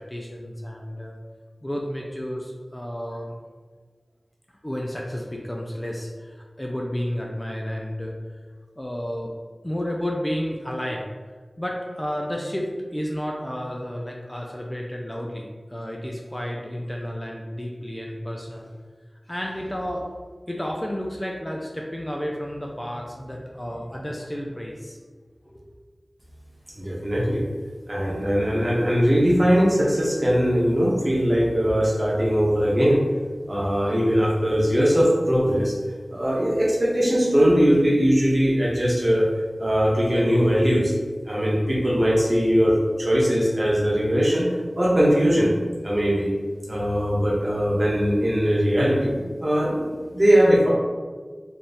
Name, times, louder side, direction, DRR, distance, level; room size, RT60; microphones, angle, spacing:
voice 1, 0.1-1.2 1.6-3.3 4.6-8.2 8.8-9.3 9.6-11.2 11.6-18.7 19.3-20.0 20.5-25.0 25.5-25.7, equal, 20° left, -1 dB, 0.4 m, -31 dB
voice 2, 26.8-27.4 27.9-33.0 33.5-35.7 36.1-39.3 39.6-40.9 41.2-44.5 44.8-45.5 45.8-46.3 46.6-50.7, equal, 35° right, -5 dB, 1.0 m, -20 dB
3.4 x 2.3 x 4.1 m, 1.5 s
wide cardioid pair, 60°, 0 cm